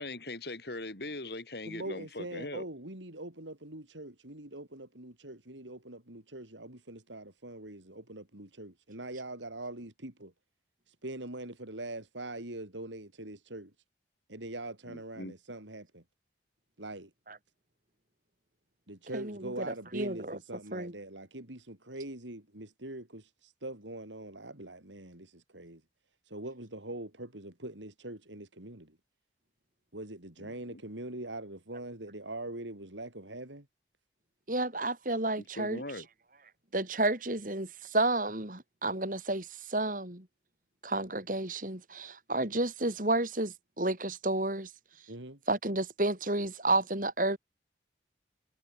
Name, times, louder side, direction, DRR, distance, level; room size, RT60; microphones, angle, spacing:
voice 1, 0.0-2.7 14.9-15.3 30.4-30.8 35.6-36.1, left 2 dB, 60° left, 3.5 m, -41 dB
voice 2, 1.7-10.3 10.9-13.7 14.3-16.0 16.8-17.1 18.9-25.8 26.3-29.0 29.9-33.6 45.1-45.4, right 1 dB, 90° right, 5.1 m, -43 dB
voice 3, 19.1-20.4 20.7-20.9 34.5-35.8 36.7-40.2 40.8-44.7 45.5-47.4, right 2 dB, 45° right, 3.4 m, -31 dB
head